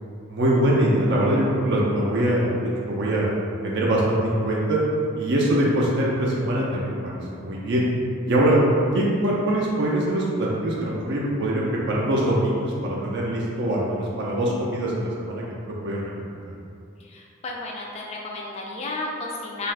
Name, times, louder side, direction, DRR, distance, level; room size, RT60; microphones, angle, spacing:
voice 1, 0.3-3.3 3.6-4.8 5.2-7.8 8.3-8.6 8.9-16.0, right 1 dB, 55° right, -4 dB, 0.4 m, -23 dB
voice 2, 17.0-19.7, left 2 dB, 30° left, -2 dB, 0.3 m, -33 dB
2.7 x 2.3 x 3.2 m, 2.5 s
head